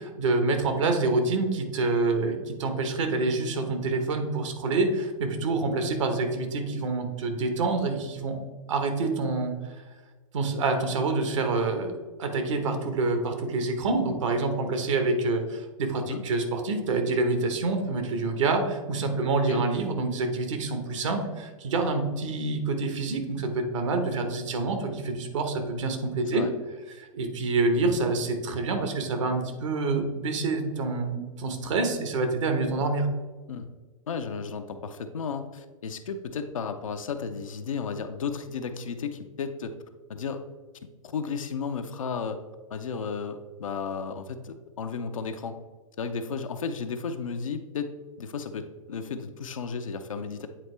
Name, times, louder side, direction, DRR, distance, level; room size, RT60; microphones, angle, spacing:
voice 1, 0.0-8.4 8.7-9.5 10.3-11.9 12.2-26.5 27.0-33.1, right 3 dB, 60° right, 6 dB, 1.2 m, -27 dB
voice 2, 34.1-39.7 40.1-40.4 41.0-42.4 42.7-45.6 46.0-47.9 48.2-50.5, left 5 dB, 70° left, 7 dB, 0.7 m, -33 dB
8.8 x 4.2 x 3.3 m, 1.3 s
figure-of-eight pair, 105°, 18 cm